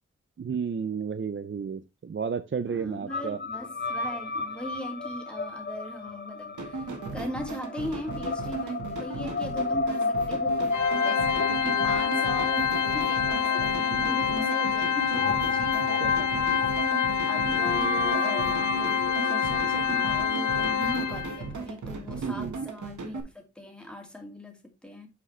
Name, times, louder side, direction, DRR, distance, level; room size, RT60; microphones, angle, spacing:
voice 1, 0.4-3.4 16.0-16.1 22.2-22.5, right 6 dB, 45° right, 0.5 m, -32 dB
voice 2, 2.7-16.9 17.2-25.1, equal, 5° left, 2.4 m, -39 dB
sound 1, 3.1-21.2, left 3 dB, 35° left, 0.9 m, -33 dB
sound 2, 6.6-23.2, right 3 dB, 90° right, 1.5 m, -37 dB
Organ, 10.7-21.5, left 7 dB, 90° left, 0.9 m, -27 dB
8.3 x 4.9 x 3.2 m
wide cardioid pair, 80°, 29 cm